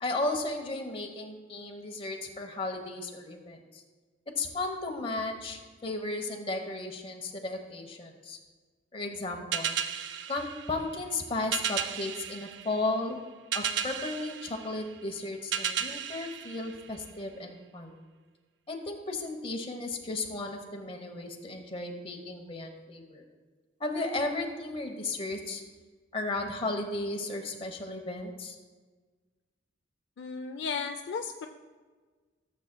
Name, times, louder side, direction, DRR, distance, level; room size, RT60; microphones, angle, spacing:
voice 1, 0.0-3.8 4.4-8.4 8.9-9.8 10.3-13.2 13.5-18.0 18.7-23.2 23.8-25.6 26.1-28.6, left 2 dB, 30° left, 3 dB, 0.9 m, -35 dB
sound 1, 9.5-17.4, right 8 dB, 75° right, 0.5 m, -35 dB
voice 2, 30.2-31.5, left 5 dB, 65° left, 5 dB, 0.4 m, -34 dB
14.5 x 7.2 x 2.2 m, 1.4 s
head